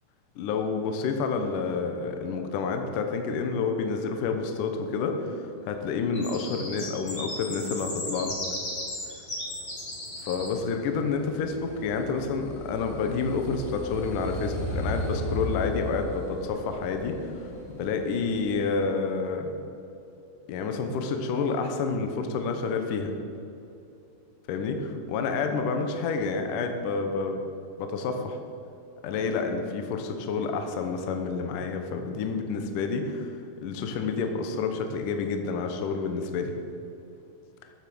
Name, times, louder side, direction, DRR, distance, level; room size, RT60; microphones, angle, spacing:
voice 1, 0.4-8.4 10.2-19.5 20.5-23.1 24.5-27.4 27.8-28.4 29.0-36.5, left 4 dB, 85° left, 5 dB, 1.8 m, -29 dB
sound 1, 6.1-10.5 14.0-14.9 15.2-15.7 16.2-16.4 16.7-18.4, left 1 dB, 40° left, 1.0 m, -37 dB
sound 2, 7.3-18.7, equal, 55° left, 4.1 m, -37 dB
14.0 x 8.8 x 6.2 m, 2.7 s
omnidirectional pair, 5.3 m